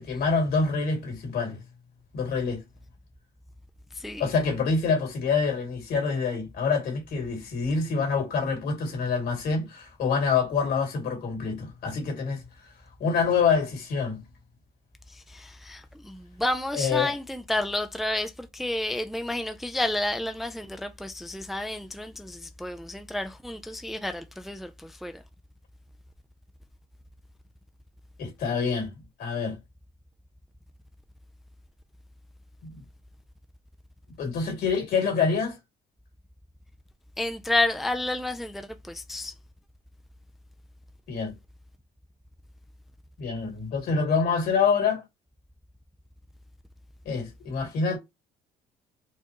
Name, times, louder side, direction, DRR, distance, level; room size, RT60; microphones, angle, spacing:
voice 1, 0.0-1.6 2.1-2.6 4.2-12.4 13.0-14.2 16.7-17.1 28.2-28.9 29.2-29.6 32.6-32.8 34.2-35.6 41.1-41.3 43.2-45.0 47.0-48.0, left 5 dB, 65° left, 2.3 m, -26 dB
voice 2, 4.0-4.3 15.1-25.2 37.2-39.3, left 1 dB, ahead, 0.4 m, -31 dB
4.6 x 2.3 x 2.9 m
cardioid pair, 110°, 17 cm